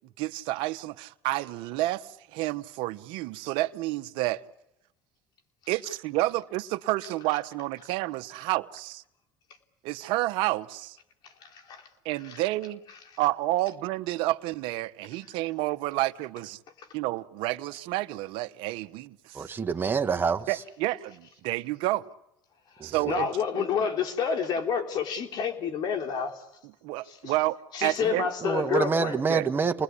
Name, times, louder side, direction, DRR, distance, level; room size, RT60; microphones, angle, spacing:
voice 1, 0.2-4.4 5.7-9.0 9.8-11.0 12.0-12.8 13.2-16.6 16.9-19.5 20.5-22.0 22.8-23.3 26.8-28.3 29.3-29.5, right 18 dB, 75° right, 1.0 m, -30 dB
voice 2, 11.2-11.9 12.2-12.4 13.1-13.2 16.8-16.9 22.7-26.4 27.0-27.3 27.7-29.2, left 6 dB, 55° left, 3.5 m, -29 dB
voice 3, 19.3-20.5 22.8-23.1 28.4-29.8, right 5 dB, 25° right, 1.5 m, -27 dB
29.5 x 20.5 x 8.4 m
supercardioid pair, 95°, 9 cm